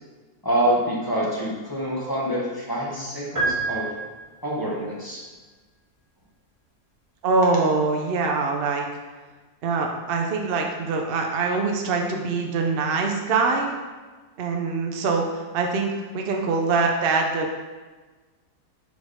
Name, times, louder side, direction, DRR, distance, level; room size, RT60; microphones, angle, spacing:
voice 1, 0.4-3.9 4.4-5.2, equal, 15° left, -5 dB, 0.9 m, -26 dB
sound 1, 3.4-4.7, right 3 dB, 20° right, 1.1 m, -28 dB
voice 2, 7.2-8.9 9.6-13.8 14.4-17.5, right 4 dB, 65° right, 1 dB, 0.6 m, -24 dB
4.9 x 4.0 x 4.7 m, 1.3 s
omnidirectional pair, 1.7 m